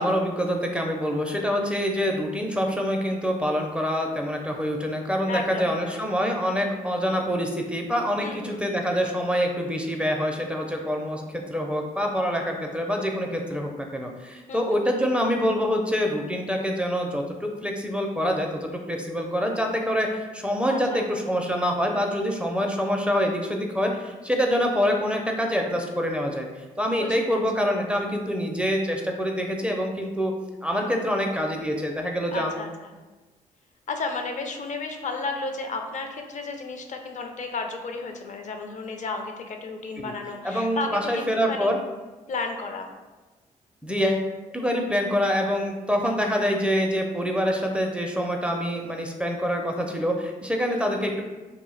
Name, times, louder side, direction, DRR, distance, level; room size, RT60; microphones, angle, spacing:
voice 1, 0.0-26.5 26.8-30.3 30.6-32.7 40.0-40.1 40.4-41.8 43.8-51.2, equal, 5° right, 1 dB, 0.4 m, -26 dB
voice 2, 5.3-6.1 8.2-8.6 13.5-13.6 14.5-14.8 20.7-21.1 27.0-27.4 32.3-32.9 33.9-41.7 42.3-42.9 50.7-51.0, left 3 dB, 50° left, 4 dB, 0.5 m, -33 dB
2.5 x 2.0 x 3.8 m, 1.2 s
supercardioid pair, 55°, 16 cm